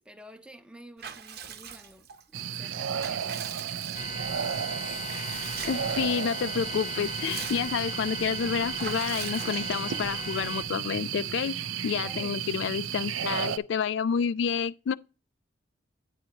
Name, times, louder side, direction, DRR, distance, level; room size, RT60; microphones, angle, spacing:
voice 1, 0.0-3.4 11.9-12.4, right 1 dB, 5° right, 0.6 m, -50 dB
Water / Bathtub (filling or washing) / Liquid, 1.0-2.2 2.7-4.4 5.1-6.0 6.4-6.5 6.8-8.0 8.7-10.0, right 7 dB, 50° right, 0.8 m, -42 dB
sound 1, 2.3-13.6, right 8 dB, 90° right, 0.5 m, -33 dB
sound 2, 3.9-10.6, left 4 dB, 35° left, 0.7 m, -39 dB
voice 2, 5.6-11.6 11.8-14.9, left 7 dB, 65° left, 0.3 m, -29 dB
9.2 x 8.6 x 2.9 m
head